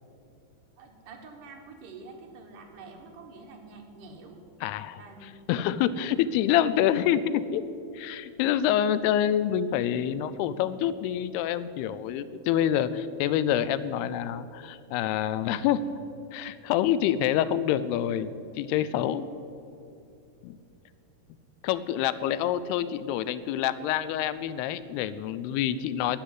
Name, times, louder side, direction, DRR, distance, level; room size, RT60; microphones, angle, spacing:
voice 1, 0.8-4.4 5.0-5.3, right 3 dB, 60° right, 2 dB, 2.7 m, -47 dB
voice 2, 4.6-5.0 5.5-7.6 7.9-15.8 16.3-19.3 20.4-20.6 21.6-26.2, left 10 dB, 90° left, 15 dB, 2.6 m, -27 dB
11.5 x 9.6 x 9.8 m, 2.6 s
omnidirectional pair, 4.5 m